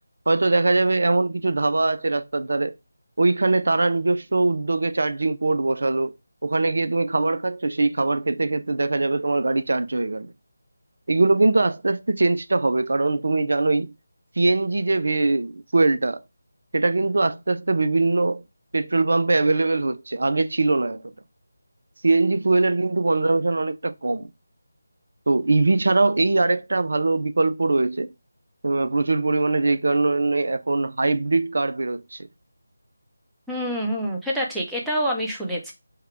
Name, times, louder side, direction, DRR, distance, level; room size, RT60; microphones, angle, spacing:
voice 1, 0.3-2.8 3.2-6.1 6.4-10.3 11.1-13.9 14.4-16.2 16.7-18.4 18.7-21.0 22.0-24.3 25.3-28.1 28.6-32.3, right 2 dB, 60° right, 0.4 m, -22 dB
voice 2, 33.5-35.7, equal, ahead, 0.7 m, -26 dB
4.7 x 2.2 x 4.4 m
figure-of-eight pair, 160°, 0 cm